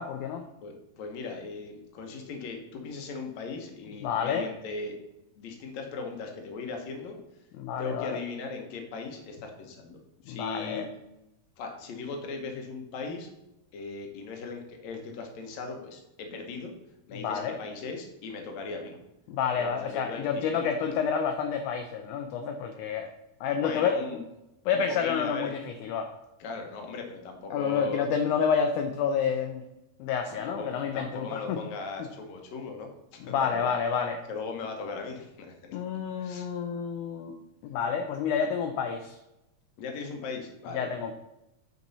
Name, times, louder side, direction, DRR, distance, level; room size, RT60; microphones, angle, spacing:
voice 1, 0.0-0.4 4.0-4.5 7.6-8.2 10.3-10.9 17.1-17.6 19.3-23.1 23.4-24.1 24.7-26.1 27.5-29.6 30.0-31.6 32.0-32.1 33.2-34.2 35.7-37.3 37.6-39.2 40.7-41.1, left 6 dB, 85° left, 6 dB, 1.7 m, -29 dB
voice 2, 0.6-4.9 5.4-7.2 7.8-10.9 11.6-13.3 13.7-16.7 17.1-19.0 19.5-20.6 20.9-21.0 23.6-24.2 24.7-25.5 26.4-28.1 30.3-33.7 34.3-35.8 36.2-36.5 39.8-40.9, left 4 dB, 65° left, 3 dB, 2.1 m, -38 dB
9.2 x 4.6 x 4.1 m, 0.92 s
omnidirectional pair, 4.1 m